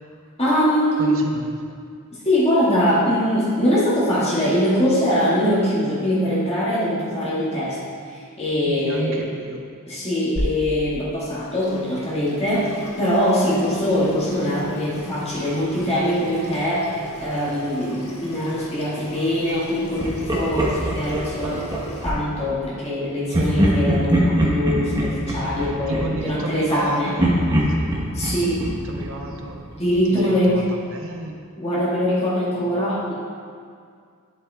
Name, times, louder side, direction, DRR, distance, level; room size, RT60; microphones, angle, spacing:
voice 1, 0.4-1.2 2.2-7.8 8.1-9.4 9.9-16.9 17.2-21.7 22.0-27.2 28.1-28.7 29.8-30.7 31.6-33.1, equal, 30° left, -9 dB, 1.7 m, -22 dB
voice 2, 1.0-1.7 8.7-9.6 25.9-28.0 28.7-29.6 30.1-30.6 30.9-31.3, right 2 dB, 60° right, 2 dB, 0.8 m, -31 dB
Water tap faucet / Sink (filling or washing), 10.3-22.1, equal, 75° left, 1.4 m, -36 dB
Laughter, 20.0-22.1 23.3-26.8 27.2-29.9, equal, 20° right, 1.0 m, -23 dB
11.0 x 7.6 x 2.3 m, 2.2 s
head